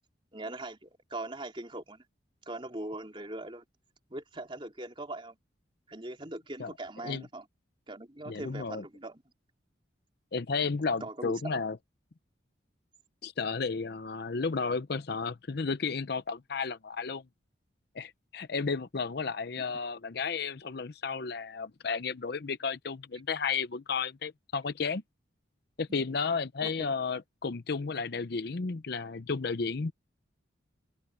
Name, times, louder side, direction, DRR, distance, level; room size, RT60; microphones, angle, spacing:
voice 1, 0.3-2.0 2.5-3.6 4.1-5.4 5.9-7.4 7.9-9.2 11.0-11.4 26.6-26.7, right 2 dB, 25° right, 3.6 m, -41 dB
voice 2, 8.3-8.8 10.3-11.8 13.2-17.2 17.9-25.0 25.8-29.9, left 5 dB, 55° left, 0.6 m, -33 dB
head